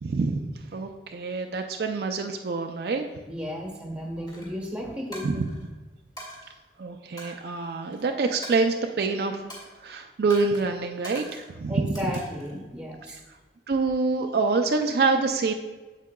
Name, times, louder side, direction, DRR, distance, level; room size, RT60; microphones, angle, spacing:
voice 1, 0.0-3.1 5.2-5.5 6.8-9.4 9.8-11.8 13.1-13.2 13.7-15.5, right 4 dB, 60° right, 4 dB, 0.4 m, -26 dB
voice 2, 3.3-5.4 11.7-13.2, equal, 5° right, 0 dB, 1.1 m, -34 dB
Coin (dropping), 4.3-4.5 5.1-5.7 6.2-6.4 7.2-8.0 8.4-9.1 9.5-9.8 10.3-10.6 11.0-11.5 12.0-12.6, equal, 25° left, 2.1 m, -43 dB
8.3 x 7.4 x 2.2 m, 1.2 s
head